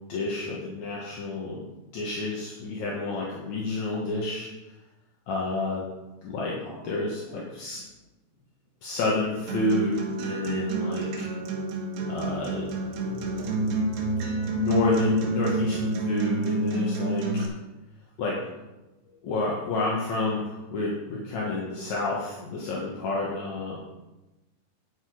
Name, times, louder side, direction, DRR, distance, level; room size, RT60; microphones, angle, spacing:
voice 1, 0.1-1.7 1.9-4.5 5.3-5.9 6.2-6.6 6.8-7.8 8.8-11.1 12.1-12.7 14.6-17.4 18.2-18.4 19.2-23.8, left 3 dB, 60° left, -4 dB, 2.0 m, -29 dB
voice 2, 6.6-7.5 7.9-8.0 11.7-15.8 19.1-19.2, equal, 40° left, -3 dB, 2.7 m, -45 dB
Acoustic guitar, 9.5-17.5, right 2 dB, 70° right, 3.5 m, -28 dB
10.5 x 7.3 x 4.9 m, 1.0 s
omnidirectional pair, 5.0 m